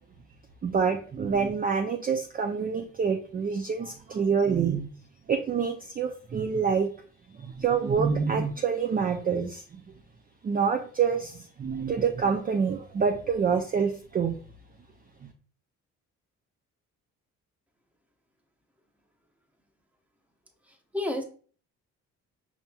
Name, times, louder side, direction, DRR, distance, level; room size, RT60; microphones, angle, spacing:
voice 1, 0.6-4.9 5.3-6.9 7.3-9.6 10.4-14.4 15.2-15.3, right 6 dB, 30° right, 4 dB, 0.4 m, -27 dB
voice 2, 20.6-21.2, left 1 dB, 5° right, 3 dB, 0.8 m, -31 dB
5.7 x 2.9 x 2.3 m, 0.43 s
cardioid pair, 90°, 30 cm